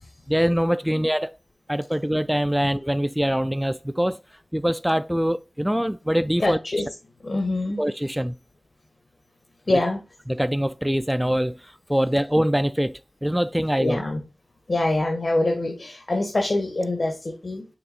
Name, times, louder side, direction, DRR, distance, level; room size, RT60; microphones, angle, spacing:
voice 1, 0.3-1.4 1.7-4.2 4.5-6.6 7.8-8.3 10.3-14.0, equal, 5° right, 0.3 m, -23 dB
voice 2, 6.4-6.9 7.2-7.8 9.7-10.0 13.8-14.2 14.7-17.6, left 2 dB, 65° left, 1.5 m, -25 dB
6.8 x 3.6 x 4.2 m
wide cardioid pair, 45°, 0 cm